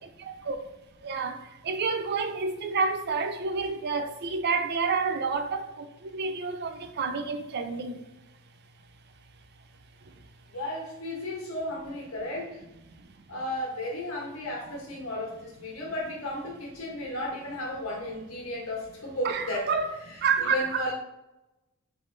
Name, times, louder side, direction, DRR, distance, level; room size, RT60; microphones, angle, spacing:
voice 1, 1.0-1.4 1.6-5.7 6.1-8.0 19.2-19.9 20.2-20.9, right 5 dB, 50° right, 0.4 m, -28 dB
voice 2, 10.5-12.6 13.3-19.7 20.0-20.9, left 1 dB, 90° left, 1.3 m, -34 dB
3.5 x 3.1 x 3.9 m
head